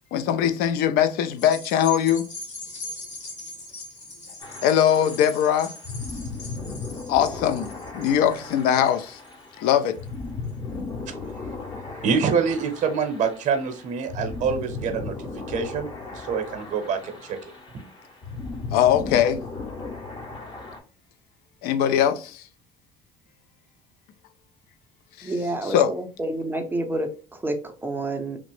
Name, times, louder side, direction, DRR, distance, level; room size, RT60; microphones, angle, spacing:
voice 1, 0.1-2.3 4.6-5.7 7.1-9.2 9.6-10.0 18.7-19.4 21.6-22.4 25.2-25.3 25.7-25.9, left 10 dB, 75° left, 0.4 m, -21 dB
sound 1, 1.3-10.0 10.5-10.6, left 2 dB, 45° left, 1.4 m, -40 dB
sound 2, 4.4-20.8, left 3 dB, 30° left, 0.7 m, -36 dB
voice 2, 12.0-17.8, right 6 dB, 50° right, 0.7 m, -26 dB
voice 3, 25.2-28.4, right 1 dB, 15° right, 0.4 m, -29 dB
3.0 x 2.0 x 3.0 m
cardioid pair, 110°, 16 cm